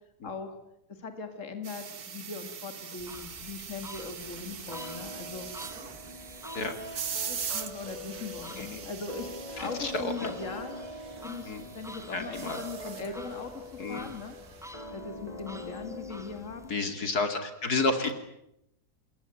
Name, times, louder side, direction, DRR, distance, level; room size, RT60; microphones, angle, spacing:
voice 1, 0.9-5.5 7.2-10.8 11.2-14.4 14.9-16.8, left 4 dB, 50° left, 7 dB, 2.7 m, -40 dB
sound 1, 1.6-14.7, right 7 dB, 70° right, 2.0 m, -42 dB
sound 2, 3.0-16.7, equal, ahead, 2.9 m, -49 dB
sound 3, 4.7-17.1, left 2 dB, 25° left, 2.0 m, -44 dB
voice 2, 9.6-10.3 11.5-11.6 12.1-12.6 13.8-14.1 16.7-18.1, left 3 dB, 70° left, 8 dB, 3.3 m, -31 dB
28.5 x 21.5 x 9.2 m, 0.81 s
omnidirectional pair, 1.7 m